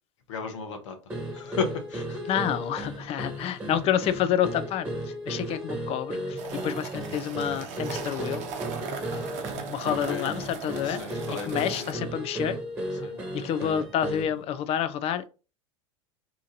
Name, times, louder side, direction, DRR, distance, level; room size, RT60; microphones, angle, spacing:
voice 1, 0.3-1.0 1.3-2.3 3.0-3.2 10.1-10.3 10.8-11.9 12.9-13.2, left 5 dB, 70° left, 0.9 m, -35 dB
sound 1, 1.1-14.4, equal, 10° right, 1.5 m, -35 dB
voice 2, 2.3-8.4 9.0-11.2 11.4-12.6 13.0-15.3, left 9 dB, 40° left, 0.5 m, -29 dB
sound 2, 6.4-11.9, right 5 dB, 45° right, 0.8 m, -38 dB
2.9 x 2.5 x 3.8 m
hypercardioid pair, 85°, 16 cm